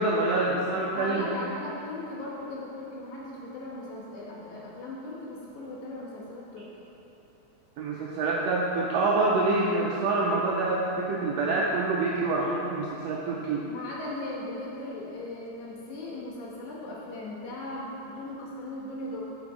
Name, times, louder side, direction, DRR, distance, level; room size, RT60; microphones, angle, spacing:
voice 1, 0.0-1.3 7.8-13.6, right 2 dB, 85° right, -3 dB, 1.5 m, -26 dB
voice 2, 0.9-6.7 13.7-19.2, left 2 dB, 75° left, -5 dB, 2.5 m, -38 dB
8.9 x 5.4 x 3.6 m, 3.0 s
omnidirectional pair, 3.5 m